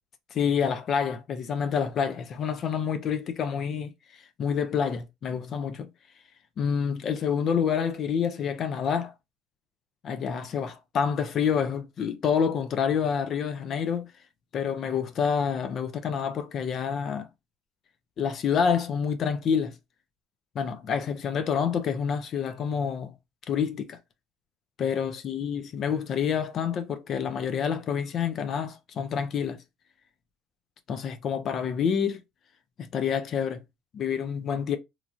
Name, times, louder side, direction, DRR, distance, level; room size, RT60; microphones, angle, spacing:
voice 1, 0.3-5.9 6.6-9.1 10.0-14.1 14.5-17.3 18.2-19.8 20.6-23.1 23.5-24.0 24.8-29.6 30.9-32.2 32.8-33.6 33.9-34.8, left 7 dB, 45° left, 0.4 m, -28 dB
3.1 x 2.5 x 2.3 m
cardioid pair, 115°, 0 cm